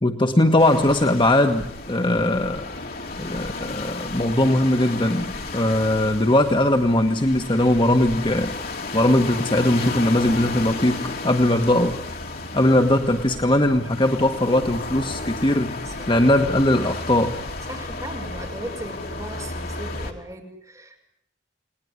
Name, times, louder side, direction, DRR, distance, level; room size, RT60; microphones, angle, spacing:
voice 1, 0.0-2.7 3.2-8.5 8.9-12.0 12.5-17.4, left 1 dB, 25° left, 5 dB, 1.6 m, -20 dB
sound 1, 0.6-20.1, left 3 dB, 55° left, 3.6 m, -33 dB
voice 2, 17.7-21.1, right 1 dB, 20° right, 1 dB, 6.3 m, -37 dB
29.5 x 20.5 x 9.9 m, 0.72 s
head